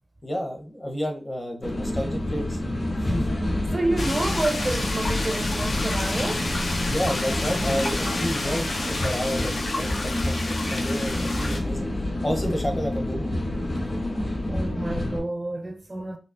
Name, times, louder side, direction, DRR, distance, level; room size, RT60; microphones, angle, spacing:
voice 1, 0.2-2.6 3.0-3.4 5.7-5.8 6.9-11.9 12.2-13.4, equal, 35° left, 0.8 m, -30 dB
sound 1, 1.6-15.2, left 1 dB, 55° left, 1.8 m, -28 dB
voice 2, 3.7-6.5 14.5-16.2, right 2 dB, 35° right, 0.4 m, -29 dB
sound 2, 4.0-11.6, left 2 dB, 90° left, 0.6 m, -31 dB
5.1 x 2.0 x 2.4 m
wide cardioid pair, 75°, 0 cm